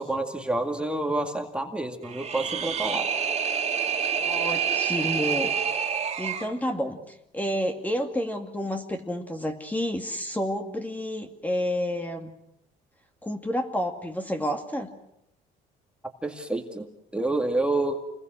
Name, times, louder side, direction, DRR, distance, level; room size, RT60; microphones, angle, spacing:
voice 1, 0.0-3.1 16.2-18.0, right 2 dB, 5° right, 3 dB, 2.2 m, -28 dB
sound 1, 2.0-6.5, right 7 dB, 40° right, 2.9 m, -27 dB
voice 2, 4.2-5.5 5.9-12.3 13.2-14.9, equal, 10° left, 4 dB, 2.3 m, -30 dB
29.5 x 21.5 x 6.2 m, 0.81 s
cardioid pair, 110°, 17 cm